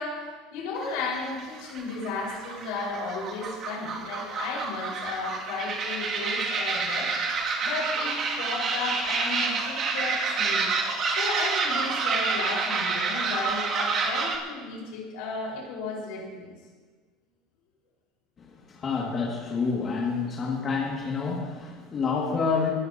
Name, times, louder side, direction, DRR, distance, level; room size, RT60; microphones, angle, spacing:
voice 1, 0.0-10.7 11.1-16.6, left 3 dB, 70° left, -2 dB, 5.2 m, -34 dB
sound 1, 0.8-14.4, right 4 dB, 45° right, 2.6 m, -28 dB
voice 2, 18.4-22.7, left 5 dB, 35° left, -2 dB, 2.3 m, -28 dB
21.5 x 14.0 x 3.0 m, 1.5 s
hypercardioid pair, 90°, 0 cm